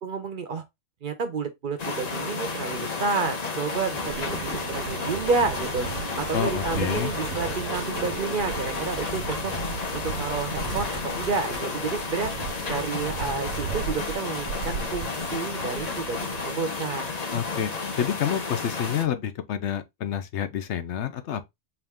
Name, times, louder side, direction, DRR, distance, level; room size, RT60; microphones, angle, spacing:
voice 1, 0.0-0.6 1.0-5.9 6.2-9.5 9.9-12.3 12.7-16.2 16.4-17.1, right 4 dB, 55° right, 0.7 m, -30 dB
sound 1, 1.8-19.0, left 4 dB, 40° left, 0.8 m, -32 dB
sound 2, 4.0-16.5, right 7 dB, 85° right, 1.0 m, -36 dB
voice 2, 6.3-7.1 17.3-17.7 18.0-21.4, left 9 dB, 75° left, 0.9 m, -28 dB
sound 3, 7.7-8.1 8.3-8.4 8.7-10.0 10.6-11.9 12.3-12.5 13.9-14.1 14.3-15.4, right 1 dB, 55° left, 2.4 m, -43 dB
4.7 x 2.6 x 3.5 m
omnidirectional pair, 1.2 m